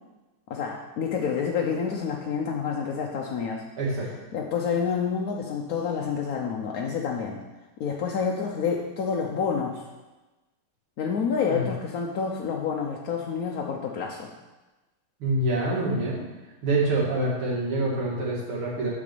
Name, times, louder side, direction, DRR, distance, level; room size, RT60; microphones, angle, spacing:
voice 1, 0.5-3.6 4.0-7.4 7.8-9.9 11.0-14.3, left 6 dB, 60° left, 0 dB, 1.0 m, -28 dB
voice 2, 3.8-4.1 11.5-11.7 15.2-16.2 16.6-18.9, right 2 dB, 75° right, -5 dB, 3.2 m, -26 dB
8.9 x 5.0 x 6.8 m, 1.1 s
omnidirectional pair, 2.3 m